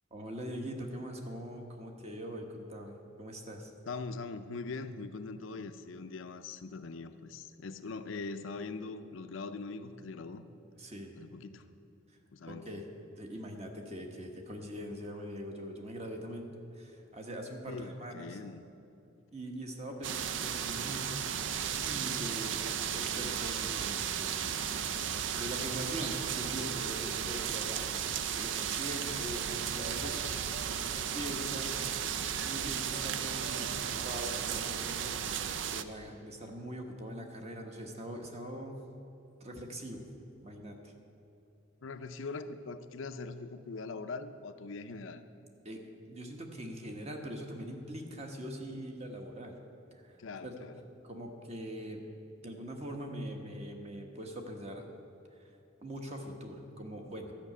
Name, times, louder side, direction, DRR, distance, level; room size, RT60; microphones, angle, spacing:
voice 1, 0.1-3.7 10.8-11.1 12.1-12.2 12.5-12.8 13.1-18.4 19.3-21.2 21.8-24.5 25.3-27.9 28.3-31.8 32.3-35.2 35.6-38.8 39.4-40.0 40.4-40.9 45.6-45.8 46.1-49.6 49.9-50.5 51.0-52.0 52.4-54.8 55.8-57.3, equal, 30° right, 3 dB, 1.1 m, -42 dB
voice 2, 3.9-10.4 11.2-11.7 12.3-12.7 17.7-18.7 41.8-45.2 50.2-50.8, left 3 dB, 75° left, 9 dB, 0.5 m, -42 dB
sound 1, 20.0-35.8, right 8 dB, 65° right, 0.5 m, -35 dB
12.0 x 5.8 x 8.4 m, 2.8 s
head